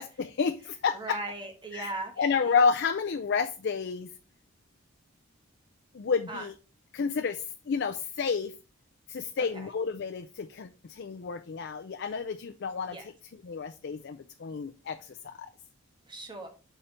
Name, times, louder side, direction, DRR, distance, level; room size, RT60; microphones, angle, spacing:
voice 1, 0.0-1.2 1.7-1.9 2.2-4.1 5.9-6.5 6.9-8.5 9.1-13.1 13.4-15.5, left 5 dB, 55° left, 8 dB, 0.4 m, -30 dB
voice 2, 0.9-2.2 6.3-6.5 9.4-9.7 12.9-13.0 16.0-16.5, right 2 dB, 20° right, 3 dB, 1.3 m, -38 dB
5.7 x 4.3 x 5.0 m, 0.35 s
head